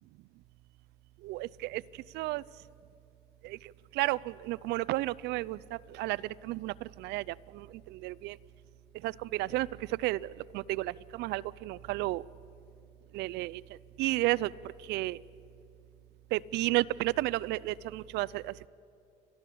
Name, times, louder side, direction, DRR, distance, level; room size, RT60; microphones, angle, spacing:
voice 1, 1.2-1.8 2.1-2.4 3.4-3.6 4.0-6.2 6.4-7.7 7.9-8.4 9.0-9.7 10.0-10.3 10.5-12.2 13.1-13.6 14.0-14.5 14.9-15.2 16.3-18.5, right 18 dB, 85° right, 21 dB, 0.5 m, -32 dB
30.0 x 13.5 x 8.5 m, 2.7 s
cardioid pair, 110°, 17 cm